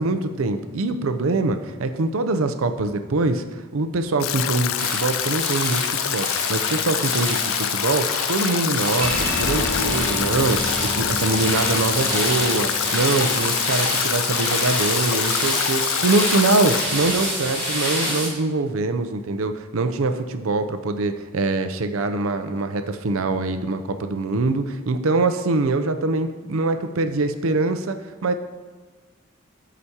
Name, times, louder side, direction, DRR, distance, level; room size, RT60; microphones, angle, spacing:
voice 1, 0.0-3.5 3.7-28.3, right 3 dB, 80° right, 9 dB, 0.6 m, -24 dB
Stream / Drip / Trickle dribble, 4.2-16.9, left 11 dB, 75° left, 0.3 m, -26 dB
sound 1, 4.8-18.3, equal, 10° left, 2.4 m, -27 dB
sound 2, 9.0-15.8, left 1 dB, 40° left, 1.1 m, -31 dB
12.5 x 5.0 x 2.9 m, 1.3 s
head